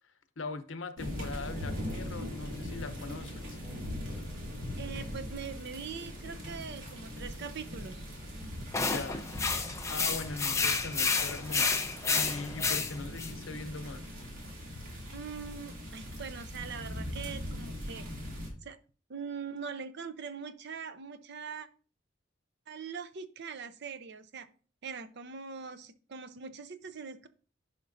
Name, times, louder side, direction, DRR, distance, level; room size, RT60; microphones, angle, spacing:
voice 1, 0.0-3.6 8.9-9.2 9.9-14.1, left 3 dB, 70° left, 0.8 m, -41 dB
sound 1, 1.0-18.5, left 1 dB, 85° right, 2.6 m, -41 dB
voice 2, 4.8-8.0 15.1-18.1 18.6-18.8 19.1-21.7 22.7-24.5 24.8-27.3, right 6 dB, 60° right, 0.6 m, -42 dB
sound 2, 8.7-13.3, left 4 dB, 15° left, 0.7 m, -30 dB
11.0 x 5.1 x 2.6 m
head